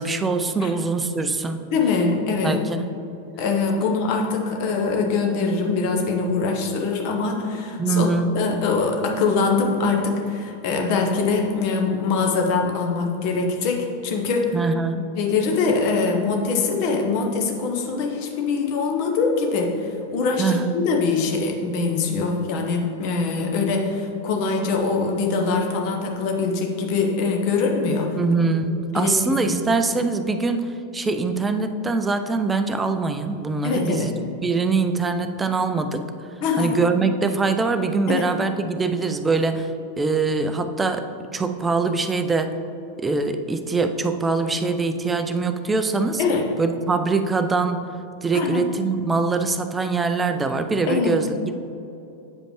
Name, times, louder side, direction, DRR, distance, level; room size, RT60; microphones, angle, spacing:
voice 1, 0.0-1.7 2.4-2.9 7.8-8.3 14.5-15.1 20.4-20.8 28.1-34.1 34.4-36.1 36.6-41.1 41.3-42.6 43.0-46.2 46.6-47.9 48.2-51.5, right 4 dB, 15° right, 8 dB, 0.4 m, -23 dB
voice 2, 1.7-2.6 3.4-8.1 8.3-14.5 15.2-28.2 28.9-29.7 33.6-34.1 36.4-36.7 38.1-38.3 46.2-46.4 48.3-48.6 50.9-51.2, left 4 dB, 45° left, 2 dB, 0.9 m, -23 dB
8.4 x 5.0 x 3.1 m, 2.7 s
figure-of-eight pair, 90°, 0 cm